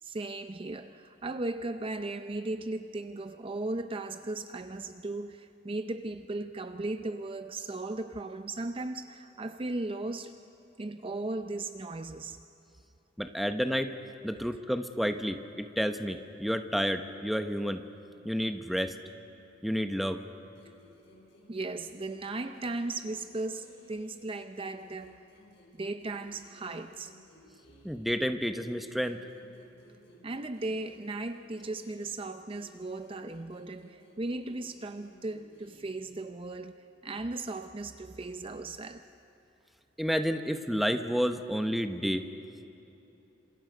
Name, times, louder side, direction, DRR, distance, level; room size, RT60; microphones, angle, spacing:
voice 1, 0.0-10.3 10.8-12.4 21.5-25.2 25.7-27.1 30.2-36.8 37.0-39.0, right 2 dB, 30° right, 9 dB, 0.6 m, -37 dB
voice 2, 13.2-13.9 14.2-17.8 18.2-18.9 19.6-20.2 27.8-29.2 40.0-42.3, equal, ahead, 7 dB, 0.9 m, -30 dB
sound 1, 20.6-24.3 24.6-28.2 28.6-32.3 32.6-36.2, equal, 70° left, 5.6 m, -58 dB
28.0 x 27.0 x 5.2 m, 3.0 s
head